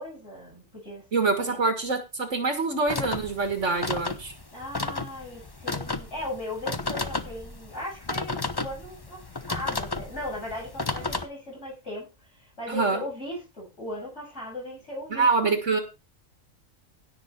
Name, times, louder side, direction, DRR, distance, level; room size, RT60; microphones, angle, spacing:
voice 1, 0.0-1.0 1.4-1.6 4.5-15.8, left 1 dB, 60° left, -4 dB, 8.1 m, -38 dB
voice 2, 1.1-4.3 12.7-13.0 15.1-15.8, right 4 dB, 65° right, 6 dB, 2.0 m, -25 dB
sound 1, 2.9-11.2, left 3 dB, 20° left, 0.8 m, -33 dB
17.0 x 6.4 x 4.3 m, 0.28 s
omnidirectional pair, 1.3 m